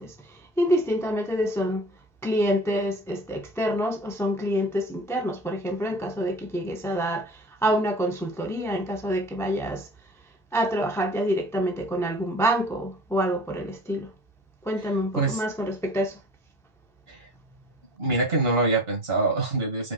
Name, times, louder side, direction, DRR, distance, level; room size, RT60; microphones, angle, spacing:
voice 1, 0.0-1.9 2.2-9.9 10.5-14.1 14.6-16.2, equal, 5° left, 0.5 m, -27 dB
voice 2, 18.0-19.9, right 3 dB, 65° right, 2.2 m, -24 dB
5.0 x 3.8 x 2.2 m
omnidirectional pair, 1.1 m